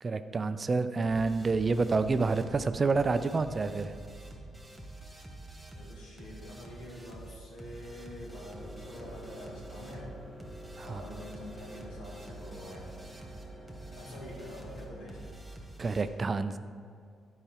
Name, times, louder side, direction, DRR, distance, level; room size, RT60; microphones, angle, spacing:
voice 1, 0.0-3.9 10.8-11.0 15.8-16.6, right 4 dB, 40° right, 11 dB, 0.4 m, -28 dB
sound 1, 1.0-16.0, right 2 dB, 10° right, 1.9 m, -47 dB
voice 2, 5.7-10.2 10.8-12.9 13.9-15.3, left 1 dB, 70° left, -3 dB, 2.0 m, -46 dB
sound 2, 8.3-15.3, equal, 25° left, 1.7 m, -49 dB
11.0 x 4.8 x 4.8 m, 2.2 s
hypercardioid pair, 45°, 0 cm